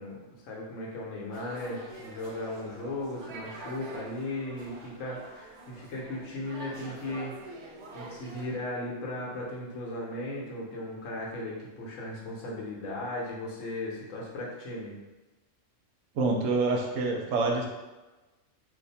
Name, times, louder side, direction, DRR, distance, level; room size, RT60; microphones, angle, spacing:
voice 1, 0.0-7.5 7.9-15.0, left 1 dB, 80° left, -3 dB, 1.2 m, -37 dB
sound 1, 1.3-8.5, right 2 dB, 65° right, 0.7 m, -46 dB
voice 2, 16.1-17.7, right 3 dB, 85° right, 0 dB, 1.0 m, -26 dB
2.6 x 2.5 x 4.0 m, 1.1 s
omnidirectional pair, 1.3 m